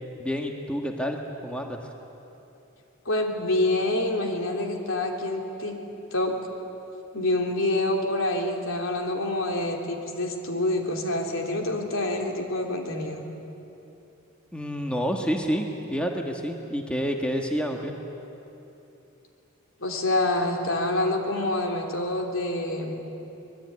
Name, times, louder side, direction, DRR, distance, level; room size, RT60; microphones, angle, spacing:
voice 1, 0.2-1.8 14.5-17.9, equal, 5° left, 2 dB, 1.7 m, -29 dB
voice 2, 3.1-5.8 6.1-6.4 7.1-13.2 19.8-22.9, left 1 dB, 70° left, 2 dB, 3.5 m, -27 dB
25.5 x 21.0 x 9.8 m, 2.9 s
head